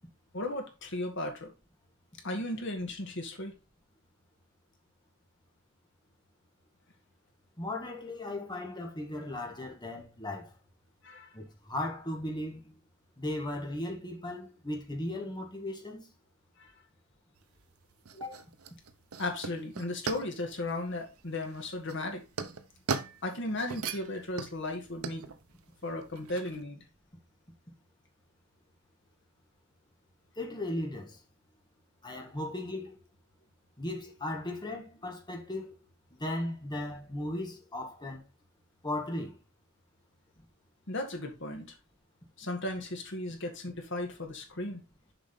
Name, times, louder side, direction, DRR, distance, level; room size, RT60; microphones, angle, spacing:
voice 1, 0.3-1.5 2.2-3.5 11.0-11.3 16.6-16.7 18.2-18.4 19.2-22.2 23.2-25.2 25.8-26.8 40.9-41.8 42.4-44.8, left 2 dB, 55° left, 2.0 m, -36 dB
voice 2, 7.6-10.5 11.3-12.8 13.2-16.1 18.2-18.3 30.4-31.2 32.0-33.0 33.8-35.8 36.1-38.2 38.8-39.4, left 1 dB, 20° left, 1.7 m, -37 dB
sound 1, 17.3-26.6, right 5 dB, 85° right, 0.8 m, -40 dB
7.1 x 5.1 x 3.8 m
head